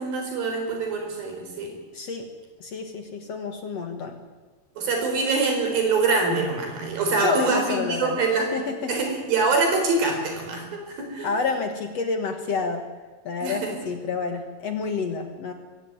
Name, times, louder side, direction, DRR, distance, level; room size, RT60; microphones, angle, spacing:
voice 1, 0.0-1.7 4.8-8.5 8.9-11.3 13.4-13.7, right 3 dB, 75° right, 3 dB, 6.0 m, -24 dB
voice 2, 1.9-2.2 2.6-4.2 7.2-8.2 8.5-9.0 11.2-12.8 13.3-15.5, left 4 dB, 55° left, 6 dB, 2.2 m, -29 dB
22.5 x 16.0 x 9.3 m, 1.3 s
omnidirectional pair, 4.2 m